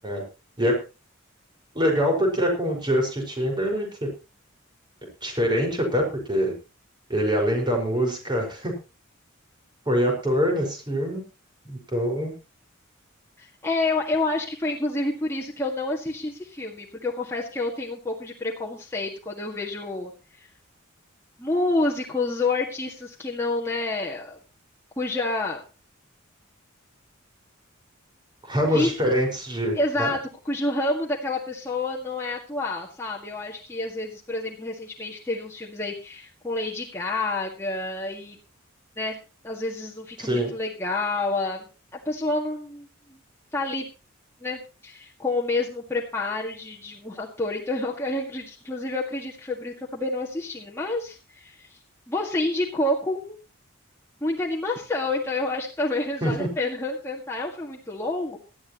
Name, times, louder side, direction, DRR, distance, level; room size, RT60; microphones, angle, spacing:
voice 1, 1.8-4.1 5.2-6.0 6.3-6.5 7.1-8.7 9.9-11.2 11.7-12.3 28.5-30.1 40.2-40.5 56.2-56.5, equal, 25° right, 2 dB, 5.2 m, -24 dB
voice 2, 13.4-20.1 21.4-24.4 25.0-25.6 28.7-28.9 29.7-30.2 30.5-38.4 39.0-39.2 39.4-42.9 43.5-43.9 44.4-51.7 52.1-53.4 54.2-58.4, left 2 dB, 15° left, -3 dB, 1.8 m, -28 dB
18.5 x 13.0 x 3.0 m, 0.30 s
head